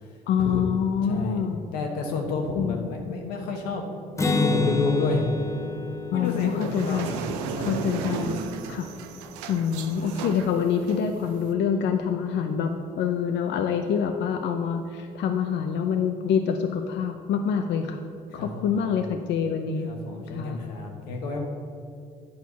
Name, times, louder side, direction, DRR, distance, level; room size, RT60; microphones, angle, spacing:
voice 1, 0.3-1.6 2.6-2.9 4.2-4.4 6.1-7.1 7.6-8.4 8.7-8.9 9.5-18.0 18.3-19.9 20.3-20.7, left 7 dB, 60° left, 5 dB, 0.6 m, -26 dB
voice 2, 1.1-1.4 1.7-3.8 4.2-5.3 6.1-7.8 18.3-19.1 19.9-21.4, left 3 dB, 90° left, 1 dB, 1.2 m, -30 dB
Acoustic guitar, 4.2-7.8, left 3 dB, 15° left, 0.7 m, -29 dB
sound 1, 6.2-11.5, right 6 dB, 85° right, 0.6 m, -35 dB
8.6 x 4.5 x 6.9 m, 2.4 s
hypercardioid pair, 60°, 20 cm